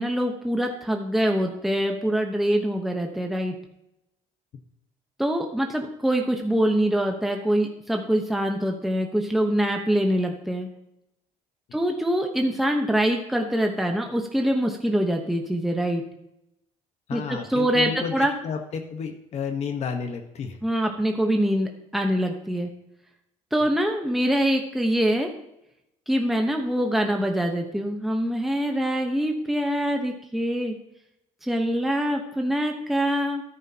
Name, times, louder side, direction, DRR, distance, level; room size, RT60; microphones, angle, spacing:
voice 1, 0.0-3.5 5.2-10.7 11.7-16.0 17.1-18.3 20.6-22.7 23.5-25.3 26.1-30.7 31.4-33.4, equal, ahead, 2 dB, 1.0 m, -24 dB
voice 2, 17.1-20.6, left 6 dB, 55° left, 4 dB, 1.2 m, -31 dB
13.0 x 11.0 x 2.9 m, 0.84 s
cardioid pair, 115°, 14 cm